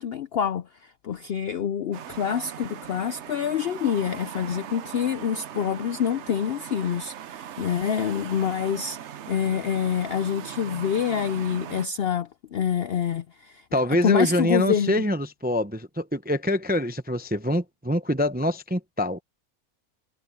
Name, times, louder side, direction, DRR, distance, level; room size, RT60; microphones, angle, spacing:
voice 1, 0.0-15.0, left 8 dB, 65° left, 0.6 m, -27 dB
sound 1, 1.9-11.9, right 10 dB, 60° right, 0.9 m, -40 dB
voice 2, 13.7-19.2, left 1 dB, 10° right, 0.4 m, -25 dB
omnidirectional pair, 1.6 m